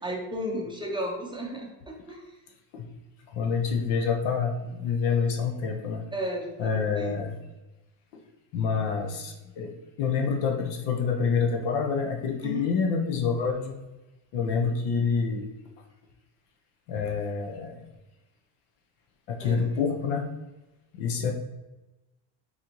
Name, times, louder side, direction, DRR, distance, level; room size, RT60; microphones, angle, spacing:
voice 1, 0.0-2.2 6.1-7.1 8.8-8.9 12.4-12.7 19.4-19.7, equal, 10° right, -1 dB, 0.5 m, -34 dB
voice 2, 3.3-6.0 6.6-7.3 8.1-8.2 8.5-9.7 10.0-13.8 14.3-15.5 16.9-17.8 19.3-20.3 20.9-21.3, left 5 dB, 75° left, 3 dB, 0.9 m, -27 dB
4.2 x 3.8 x 3.0 m, 1.0 s
cardioid pair, 140°, 50 cm